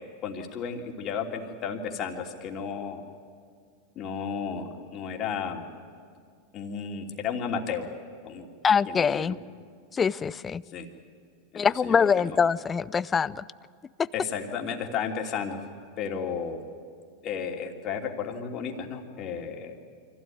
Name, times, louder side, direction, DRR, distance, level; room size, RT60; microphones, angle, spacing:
voice 1, 0.0-3.0 3.9-5.7 6.5-7.9 8.2-8.4 8.9-9.4 10.7-10.9 11.5-12.4 14.1-15.6 16.0-16.6 17.2-19.7, left 6 dB, 40° left, 2 dB, 3.0 m, -33 dB
voice 2, 8.6-9.4 9.9-10.6 11.6-13.4, left 6 dB, 25° left, 19 dB, 0.5 m, -24 dB
24.5 x 16.0 x 9.4 m, 2.2 s
hypercardioid pair, 105°, 0 cm